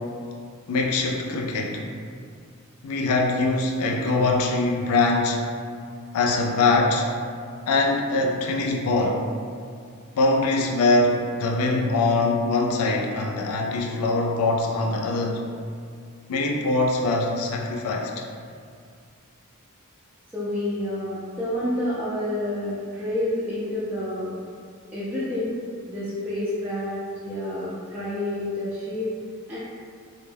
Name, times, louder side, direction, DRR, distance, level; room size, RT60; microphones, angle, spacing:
voice 1, 0.7-1.8 2.8-5.5 6.1-7.1 7.7-9.3 10.2-15.4 16.3-18.1, left 2 dB, 70° left, 0 dB, 0.3 m, -23 dB
voice 2, 20.3-24.3 24.9-25.5 25.9-29.1 29.5-29.6, left 1 dB, 10° right, -12 dB, 0.3 m, -29 dB
2.1 x 2.0 x 3.1 m, 2.2 s
head